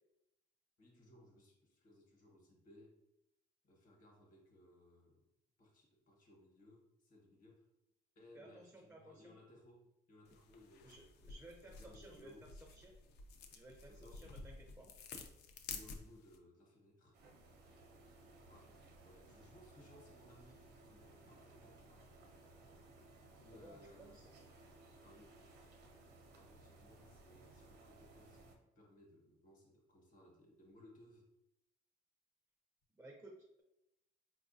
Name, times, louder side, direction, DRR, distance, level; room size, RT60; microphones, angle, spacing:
voice 1, 0.8-3.0 3.6-5.2 5.6-7.7 8.1-11.4 11.7-12.5 13.9-14.2 15.7-17.2 18.5-22.1 23.4-24.3 25.0-25.3 26.4-28.4 28.7-31.3, left 1 dB, 50° left, 0 dB, 1.0 m, -63 dB
voice 2, 8.3-9.3 10.8-12.9 13.5-14.9 23.5-24.3 33.0-33.6, right 1 dB, 10° right, 0 dB, 0.4 m, -57 dB
sound 1, 10.2-16.4, left 5 dB, 70° left, 0.4 m, -52 dB
sound 2, 17.1-28.6, right 2 dB, 70° right, 0.6 m, -61 dB
4.3 x 2.3 x 2.5 m, 0.86 s
cardioid pair, 155°, 18 cm